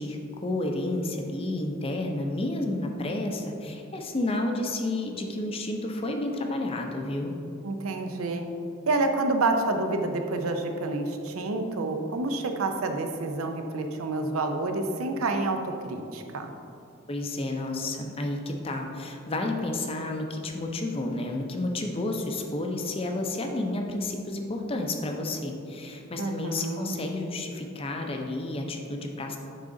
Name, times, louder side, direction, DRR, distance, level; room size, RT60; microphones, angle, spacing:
voice 1, 0.0-7.3 17.1-29.4, left 2 dB, 25° left, 3 dB, 0.6 m, -31 dB
voice 2, 7.6-8.4 8.9-16.5 26.2-27.0, right 2 dB, 80° right, 5 dB, 0.6 m, -28 dB
9.6 x 3.8 x 3.8 m, 2.6 s
head